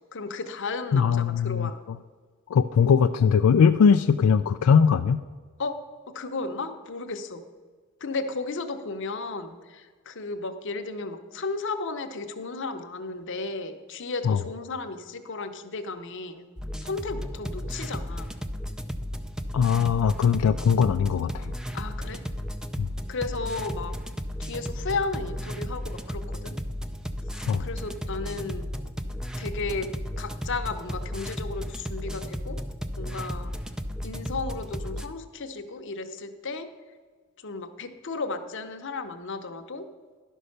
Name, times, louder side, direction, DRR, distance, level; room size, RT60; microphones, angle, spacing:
voice 1, 0.1-1.8 5.6-5.8 6.1-7.4 8.0-16.5 16.8-18.3 21.7-22.2 23.1-24.0 24.4-26.6 27.3-28.7 29.4-29.9 30.2-32.6 33.0-33.5 34.0-36.7 37.4-39.9, left 3 dB, 55° left, 7 dB, 0.8 m, -34 dB
voice 2, 0.9-2.0 2.5-5.2 14.2-14.4 19.5-21.5 22.8-22.9 27.5-27.7, left 6 dB, 85° left, 9 dB, 0.3 m, -21 dB
sound 1, 16.6-35.1, equal, 5° right, 0.4 m, -34 dB
11.5 x 5.5 x 6.5 m, 1.5 s
head